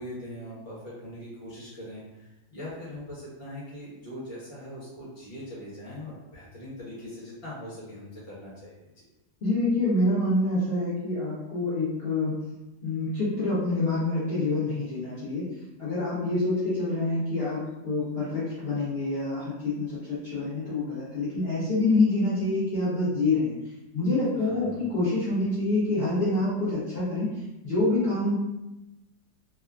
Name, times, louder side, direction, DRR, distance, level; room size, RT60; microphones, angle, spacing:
voice 1, 0.0-8.8 24.3-24.8, left 1 dB, 25° left, -9 dB, 1.0 m, -41 dB
voice 2, 9.4-12.4 12.8-15.5 15.8-23.5 23.9-27.3 27.6-28.3, left 2 dB, 45° left, -11 dB, 0.9 m, -26 dB
3.3 x 2.1 x 2.4 m, 0.96 s
omnidirectional pair, 1.7 m